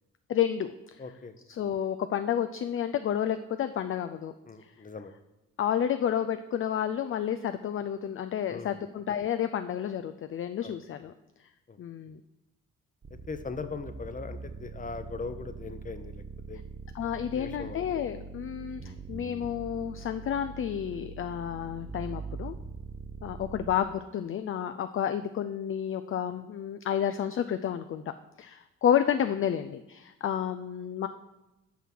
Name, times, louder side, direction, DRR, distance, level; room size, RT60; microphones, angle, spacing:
voice 1, 0.3-1.0 1.5-4.3 5.6-11.1 11.8-12.2 16.9-22.6 23.2-28.0 28.4-31.1, left 9 dB, 45° left, 9 dB, 0.4 m, -30 dB
voice 2, 1.0-1.3 4.5-5.1 8.5-8.9 10.6-10.8 11.7-11.8 13.3-16.6 17.3-17.8, left 4 dB, 25° left, 10 dB, 0.8 m, -40 dB
sound 1, 13.0-23.8, right 4 dB, 30° right, 0.8 m, -42 dB
5.8 x 5.8 x 6.1 m, 0.99 s
supercardioid pair, 55°, 30 cm